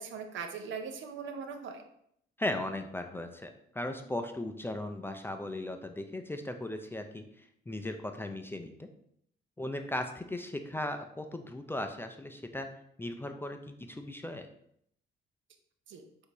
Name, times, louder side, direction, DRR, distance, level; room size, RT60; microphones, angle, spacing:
voice 1, 0.0-1.8 15.9-16.0, right 5 dB, 70° right, 6 dB, 0.7 m, -40 dB
voice 2, 2.4-8.9 9.6-12.7 13.0-14.5, left 1 dB, 10° left, 6 dB, 0.4 m, -37 dB
6.3 x 2.7 x 2.9 m, 0.71 s
cardioid pair, 90°, 20 cm